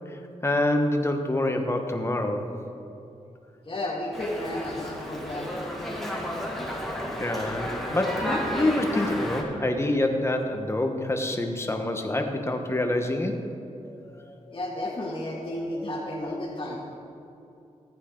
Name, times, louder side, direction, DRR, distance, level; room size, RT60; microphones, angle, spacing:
voice 1, 0.4-2.5 7.2-13.4, left 1 dB, 20° left, 4 dB, 1.2 m, -26 dB
voice 2, 3.7-5.5 13.8-17.0, left 1 dB, 40° left, -7 dB, 1.8 m, -33 dB
Dog, 4.1-9.4, equal, ahead, 1.9 m, -32 dB
14.5 x 9.2 x 3.8 m, 2.8 s
cardioid pair, 75°, 13 cm